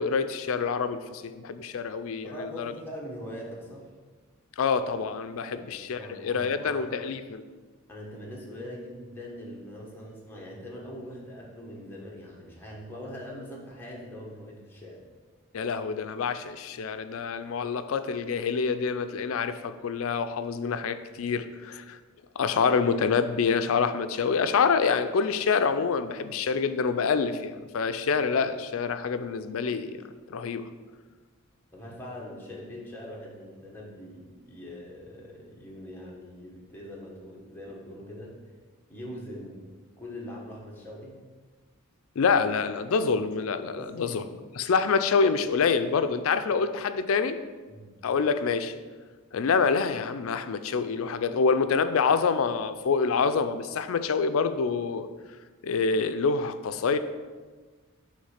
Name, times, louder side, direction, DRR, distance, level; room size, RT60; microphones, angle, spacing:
voice 1, 0.0-2.7 4.6-7.4 15.5-22.0 22.4-30.0 30.3-30.7 42.2-44.2 44.6-47.4 48.0-48.7 49.3-55.1 55.6-57.0, left 5 dB, 70° left, 11 dB, 0.4 m, -26 dB
voice 2, 2.2-3.9 5.5-5.6 5.9-7.0 7.9-15.0 31.7-38.4 38.9-41.2 43.7-44.3 47.7-47.9, equal, 10° left, -4 dB, 1.2 m, -42 dB
6.4 x 3.2 x 5.7 m, 1.4 s
head